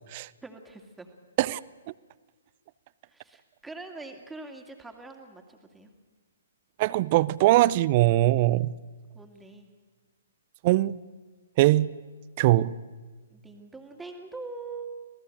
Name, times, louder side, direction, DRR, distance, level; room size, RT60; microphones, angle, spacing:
voice 1, 0.4-1.1 3.1-5.9 9.1-9.7 13.3-14.9, right 3 dB, 5° right, 4 dB, 2.4 m, -43 dB
voice 2, 6.8-8.7 10.6-11.0 11.6-11.9 12.4-12.8, right 16 dB, 40° right, 20 dB, 0.6 m, -21 dB
27.0 x 18.0 x 6.6 m, 1.4 s
figure-of-eight pair, 125°, 0 cm